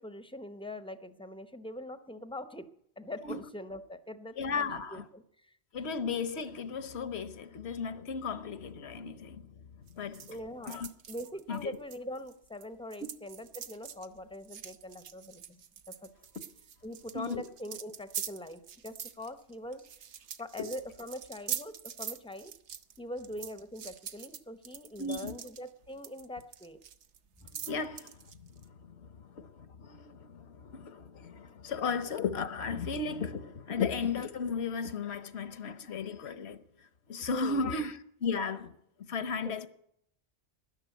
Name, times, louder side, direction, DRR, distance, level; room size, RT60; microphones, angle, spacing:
voice 1, 0.0-2.7 3.0-5.5 10.3-16.1 16.8-19.8 20.4-22.5 23.0-26.8 27.4-27.5 37.2-37.8 39.4-39.7, left 1 dB, 5° left, 0.7 m, -43 dB
voice 2, 4.4-5.0 5.7-9.6 9.9-10.4 10.6-10.9 11.5-11.7 17.1-17.4 25.0-25.4 27.5-28.2 28.6-36.6 37.1-38.7 39.1-39.7, left 5 dB, 70° left, 1.2 m, -35 dB
sound 1, 9.9-12.7 12.9-28.7, right 8 dB, 85° right, 1.0 m, -44 dB
13.0 x 11.0 x 9.2 m
omnidirectional pair, 1.1 m